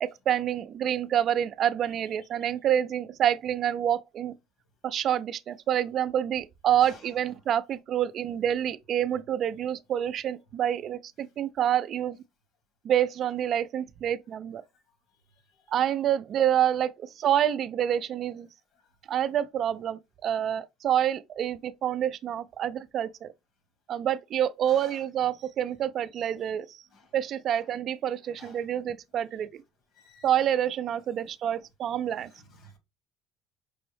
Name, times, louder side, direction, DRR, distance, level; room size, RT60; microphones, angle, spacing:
voice 1, 0.0-4.3 4.8-12.2 12.8-14.6 15.7-18.5 19.1-23.3 23.9-26.8 27.1-29.6 30.2-32.3, right 10 dB, 50° right, 0.3 m, -27 dB
voice 2, 24.7-25.0 26.4-26.5 26.9-27.1 28.4-28.6 29.9-30.3 32.3-32.8, left 3 dB, 55° left, 1.2 m, -52 dB
5.3 x 2.0 x 3.1 m
cardioid pair, 115°, 0 cm